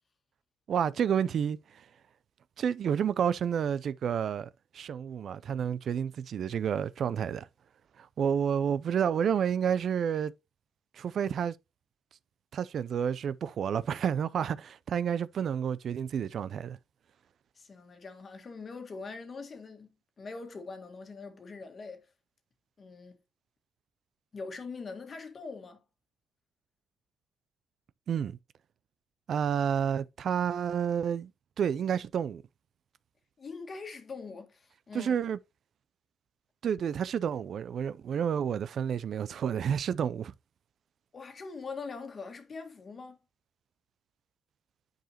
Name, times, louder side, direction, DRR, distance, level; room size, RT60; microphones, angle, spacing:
voice 1, 0.7-1.8 2.6-7.5 8.0-10.3 10.9-11.6 12.5-16.8 28.1-28.4 29.3-31.3 31.6-32.4 34.9-35.4 36.6-40.3, right 8 dB, 60° right, 0.3 m, -30 dB
voice 2, 17.5-19.9 20.2-22.1 22.8-23.2 24.3-25.8 33.4-35.1 41.1-43.2, left 4 dB, 40° left, 1.6 m, -42 dB
9.1 x 4.9 x 2.8 m
cardioid pair, 90°, 0 cm